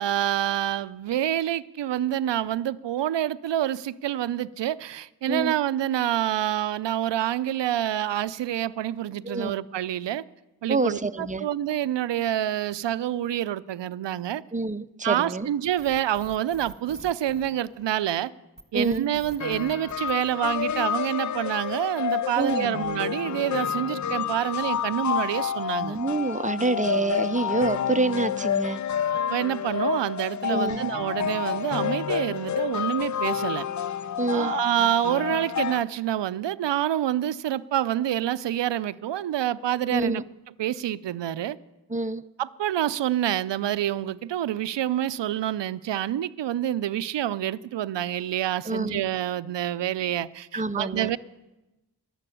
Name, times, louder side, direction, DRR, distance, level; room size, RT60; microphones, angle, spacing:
voice 1, 0.0-10.2 10.6-14.4 15.0-18.3 18.7-26.0 29.3-33.7 34.3-40.2 40.6-41.6 42.4-51.2, right 12 dB, 85° right, 0.5 m, -27 dB
voice 2, 9.2-9.5 10.7-11.5 14.5-15.5 18.7-19.0 22.4-22.8 25.8-28.8 30.5-30.8 34.2-34.5 39.9-40.2 41.9-42.2 48.7-49.0 50.5-51.2, right 3 dB, 20° right, 0.6 m, -27 dB
sound 1, 15.8-18.0 18.6-21.0, right 2 dB, ahead, 1.4 m, -45 dB
sound 2, 19.4-35.8, left 8 dB, 45° left, 0.5 m, -29 dB
12.0 x 12.0 x 8.4 m
cardioid pair, 50°, 42 cm